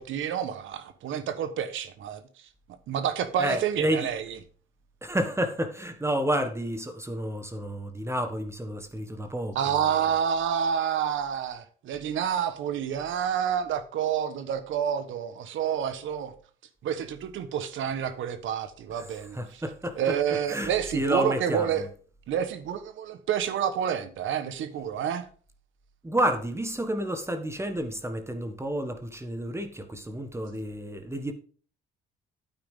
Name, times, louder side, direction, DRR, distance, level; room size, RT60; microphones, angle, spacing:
voice 1, 0.0-2.2 2.9-4.4 9.5-16.3 16.8-19.6 20.0-21.8 22.3-25.2, right 8 dB, 75° right, 1.3 m, -29 dB
voice 2, 3.4-4.1 5.0-9.8 18.9-19.1 19.3-20.0 20.5-21.9 26.0-31.3, right 1 dB, 15° right, 1.4 m, -30 dB
9.1 x 8.8 x 3.7 m
cardioid pair, 90°, 20 cm